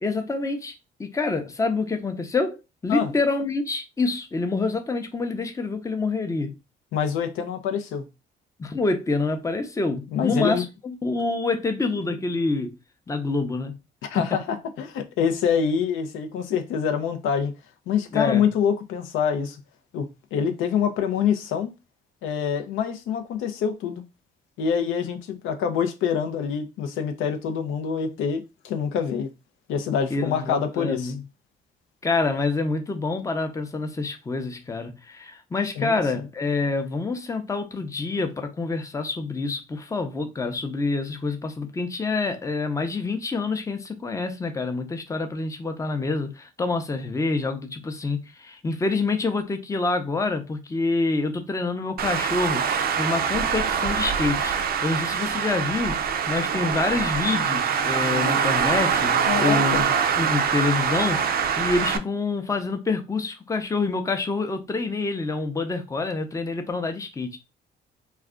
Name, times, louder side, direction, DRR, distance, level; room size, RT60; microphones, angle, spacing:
voice 1, 0.0-0.7 1.0-6.5 8.6-12.7 13.1-13.7 18.1-18.4 30.1-31.2 32.0-59.9 60.2-67.4, left 3 dB, 15° left, 0.5 m, -27 dB
voice 2, 6.9-8.1 10.1-10.6 14.0-17.5 17.9-19.6 19.9-21.7 22.2-24.0 24.6-29.3 29.7-31.1 35.8-36.2 59.3-59.9, left 7 dB, 90° left, 0.5 m, -26 dB
Traffic noise roadway noise, 52.0-62.0, right 7 dB, 50° right, 0.4 m, -24 dB
2.3 x 2.2 x 3.5 m
cardioid pair, 90°, 20 cm